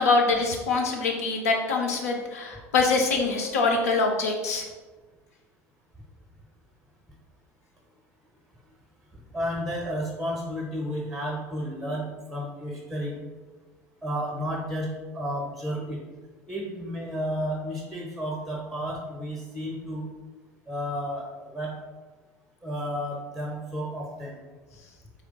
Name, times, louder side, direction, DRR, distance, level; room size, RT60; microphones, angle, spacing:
voice 1, 0.0-4.6, left 3 dB, 85° left, 2 dB, 0.6 m, -24 dB
voice 2, 9.3-13.1 14.0-14.9 15.1-16.0 16.5-20.1 20.7-21.8 22.6-24.4, equal, ahead, -2 dB, 0.9 m, -32 dB
4.4 x 2.1 x 3.8 m, 1.3 s
hypercardioid pair, 70°, 8 cm